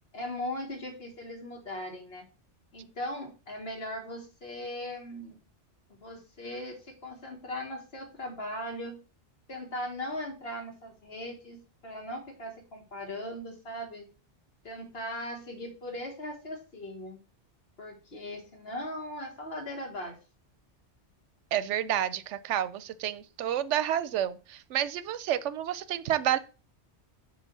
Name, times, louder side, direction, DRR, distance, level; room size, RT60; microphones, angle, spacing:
voice 1, 0.1-2.2 2.7-5.4 5.9-9.0 9.5-14.1 14.6-17.2 17.8-20.2, left 1 dB, 60° left, 2 dB, 1.9 m, -39 dB
voice 2, 21.5-26.4, right 11 dB, 85° right, 15 dB, 0.9 m, -29 dB
7.4 x 3.3 x 6.0 m, 0.34 s
omnidirectional pair, 1.2 m